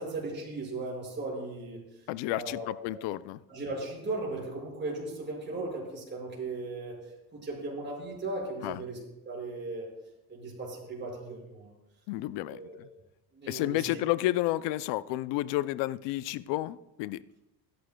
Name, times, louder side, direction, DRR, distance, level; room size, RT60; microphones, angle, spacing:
voice 1, 0.0-1.8 2.3-3.1 3.5-7.0 7.3-9.0 9.2-9.9 10.3-11.7 12.4-12.8 13.3-14.0, right 2 dB, 25° right, -3 dB, 5.6 m, -37 dB
voice 2, 2.1-3.4 8.6-8.8 12.1-12.9 13.5-17.2, left 16 dB, 90° left, 17 dB, 0.6 m, -31 dB
23.5 x 11.5 x 2.2 m, 0.96 s
cardioid pair, 115°, 41 cm